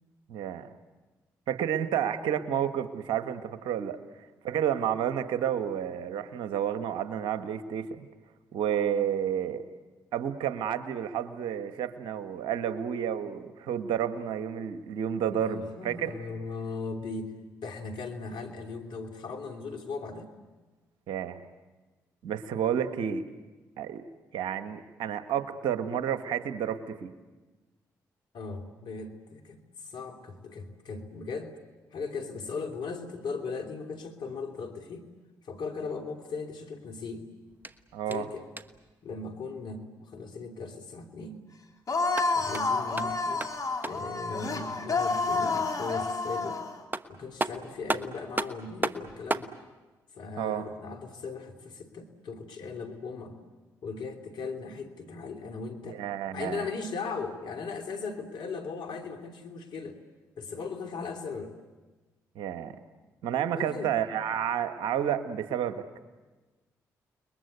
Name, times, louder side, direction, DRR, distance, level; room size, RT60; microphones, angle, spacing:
voice 1, 0.3-0.7 1.5-4.0 4.4-8.1 8.5-9.6 10.1-16.1 21.1-21.4 22.2-23.2 23.8-24.0 24.3-27.1 37.9-38.3 50.4-50.6 55.9-56.6 62.3-62.7 63.2-66.0, right 9 dB, 75° right, 9 dB, 1.5 m, -30 dB
voice 2, 15.3-17.3 17.6-20.3 28.3-31.6 31.9-35.1 35.4-37.3 38.1-38.4 39.0-41.4 42.3-43.5 43.8-46.6 47.1-49.5 50.1-53.4 53.8-60.0 60.4-61.6 63.6-63.9, left 4 dB, 70° left, 4 dB, 3.0 m, -38 dB
sound 1, 37.5-38.9 41.9-44.2 46.5-46.6 46.9-49.6, right 2 dB, 25° right, 1.3 m, -35 dB
sound 2, 41.9-46.8, left 3 dB, 45° left, 3.3 m, -29 dB
29.5 x 21.5 x 8.1 m, 1.2 s
hypercardioid pair, 45°, 8 cm